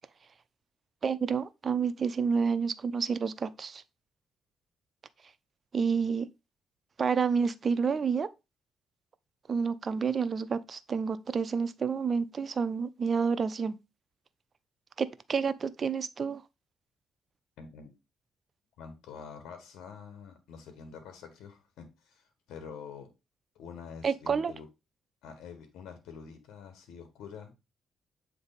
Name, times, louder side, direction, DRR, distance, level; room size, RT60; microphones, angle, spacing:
voice 1, 1.0-3.8 5.7-6.3 7.0-8.3 9.5-13.8 15.0-16.4 24.0-24.5, right 6 dB, 40° right, 0.6 m, -29 dB
voice 2, 17.6-17.9 18.8-23.1 23.5-24.7 25.2-27.6, left 6 dB, 85° left, 1.5 m, -46 dB
7.9 x 3.4 x 4.1 m
cardioid pair, 90°, 0 cm